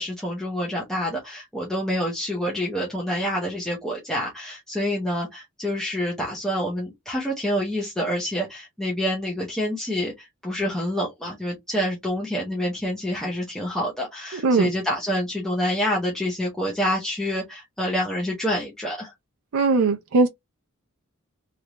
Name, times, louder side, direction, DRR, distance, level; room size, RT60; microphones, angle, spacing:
voice 1, 0.0-19.1, equal, ahead, 0.7 m, -27 dB
voice 2, 19.5-20.3, right 3 dB, 80° right, 0.5 m, -19 dB
3.2 x 2.5 x 2.9 m
head